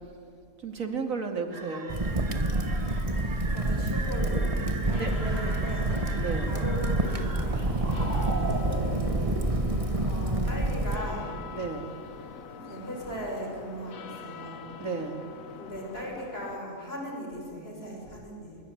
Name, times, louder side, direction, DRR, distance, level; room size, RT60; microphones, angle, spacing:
voice 1, 0.6-1.9 4.8-5.1 6.1-6.6 11.5-11.9 14.8-15.3, right 4 dB, 85° right, 6 dB, 2.8 m, -33 dB
sound 1, 1.5-9.8, right 3 dB, 70° right, 3.3 m, -39 dB
Crackle, 1.9-11.0, right 2 dB, 25° right, 1.4 m, -28 dB
voice 2, 3.5-6.0 6.5-7.3 8.1-8.6 10.0-11.4 12.5-14.7 15.5-18.6, equal, 50° left, 0 dB, 6.8 m, -38 dB
sound 2, 4.9-16.6, left 6 dB, 90° left, 1.6 m, -45 dB
25.0 x 23.0 x 9.3 m, 2.6 s
omnidirectional pair, 1.4 m